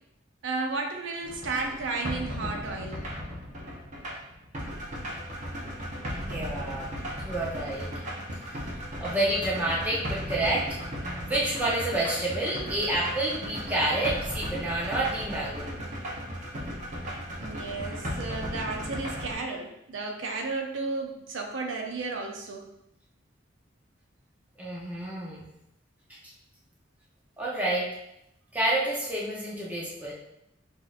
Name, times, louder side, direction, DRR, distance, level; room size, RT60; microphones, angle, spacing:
voice 1, 0.4-3.0 9.0-9.2 17.4-22.7, right 3 dB, 75° right, 2 dB, 0.5 m, -33 dB
sound 1, 1.2-19.3, equal, 40° right, 0.8 m, -36 dB
voice 2, 6.2-7.0 7.2-7.9 8.5-8.7 9.0-15.7 24.6-25.5 27.4-27.9 28.5-30.1, right 1 dB, 10° right, -6 dB, 0.9 m, -29 dB
5.9 x 2.8 x 2.5 m, 0.81 s
head